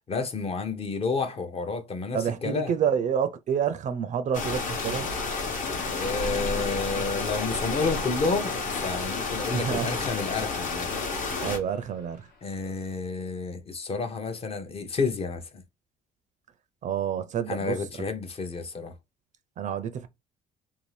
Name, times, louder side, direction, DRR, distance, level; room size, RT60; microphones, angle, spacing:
voice 1, 0.1-2.7 5.8-10.9 12.4-15.6 17.5-18.9, left 4 dB, 35° left, 0.6 m, -30 dB
voice 2, 2.1-5.1 9.5-10.0 11.4-12.3 16.8-18.0 19.6-20.1, right 8 dB, 45° right, 0.4 m, -28 dB
sound 1, 4.3-11.6, left 4 dB, 50° left, 0.9 m, -30 dB
sound 2, 7.2-12.9, left 3 dB, 75° left, 1.1 m, -48 dB
2.6 x 2.3 x 3.2 m
cardioid pair, 110°, 17 cm